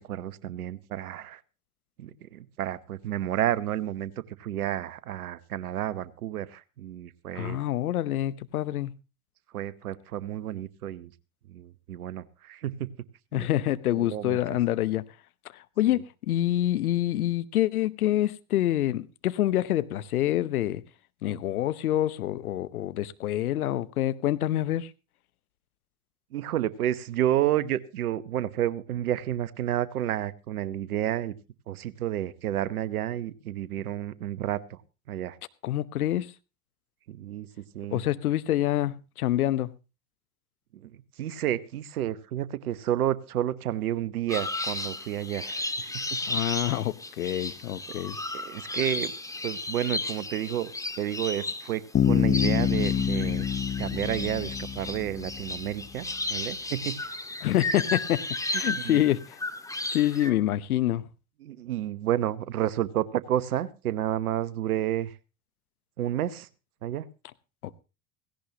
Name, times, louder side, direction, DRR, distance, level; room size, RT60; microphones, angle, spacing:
voice 1, 0.0-1.4 2.0-7.6 9.5-11.1 11.5-12.9 13.3-13.5 13.9-14.4 26.3-31.3 31.7-34.8 35.1-35.4 37.1-37.5 37.7-38.0 40.7-46.2 48.0-48.1 48.3-49.1 49.4-50.7 51.0-53.5 53.8-57.2 58.7-59.0 61.4-65.1 66.0-66.5 66.8-67.1, right 12 dB, 80° right, 1.0 m, -31 dB
voice 2, 7.3-8.9 13.3-15.0 15.5-20.8 21.2-24.9 35.6-36.3 37.9-39.7 46.3-48.2 57.4-58.2 58.5-59.4 59.9-61.0 67.6-67.8, left 13 dB, 80° left, 0.9 m, -26 dB
sound 1, 44.3-60.3, left 2 dB, 10° left, 1.7 m, -34 dB
Bass guitar, 51.9-55.7, left 8 dB, 25° left, 1.0 m, -26 dB
17.0 x 17.0 x 2.9 m
hypercardioid pair, 75°, 43 cm